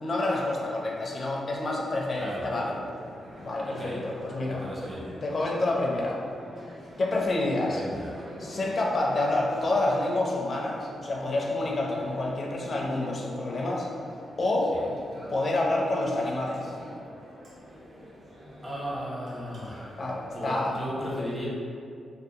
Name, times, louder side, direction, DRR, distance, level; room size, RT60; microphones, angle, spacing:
voice 1, 0.0-2.8 3.4-4.6 5.2-6.2 7.0-7.8 8.4-13.9 14.4-14.7 15.3-16.7 20.0-20.8 21.2-21.3, left 2 dB, 45° left, -2 dB, 0.4 m, -28 dB
sound 1, 2.1-20.8, equal, 55° right, 0.7 m, -46 dB
voice 2, 2.2-2.5 3.6-4.1 4.5-5.1 7.7-8.2 14.7-14.9 18.6-21.5, equal, 15° right, -6 dB, 0.7 m, -36 dB
2.7 x 2.3 x 2.4 m, 2.3 s
cardioid pair, 90°, 0 cm